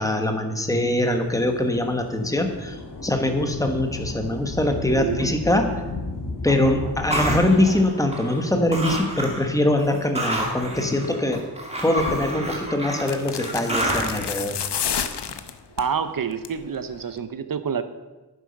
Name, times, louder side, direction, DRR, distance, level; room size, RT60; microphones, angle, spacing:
voice 1, 0.0-2.8 3.0-5.7 6.4-11.4 11.8-14.6, left 1 dB, 10° left, 5 dB, 1.3 m, -23 dB
Thunder / Rain, 1.1-10.1 10.8-10.9 11.8-13.1 14.6-15.4, left 2 dB, 50° left, 2.5 m, -36 dB
voice 2, 4.9-5.4 6.5-6.9 15.8-17.8, right 6 dB, 55° right, 11 dB, 0.8 m, -28 dB
sound 1, 7.1-8.5 8.7-9.5 9.8-14.3, right 1 dB, 15° right, 2.2 m, -28 dB
sound 2, 12.0-12.2 13.0-15.9 16.3-16.6 16.9-17.0, left 8 dB, 75° left, 0.8 m, -30 dB
11.0 x 9.7 x 5.3 m, 1.2 s
wide cardioid pair, 135°, 41 cm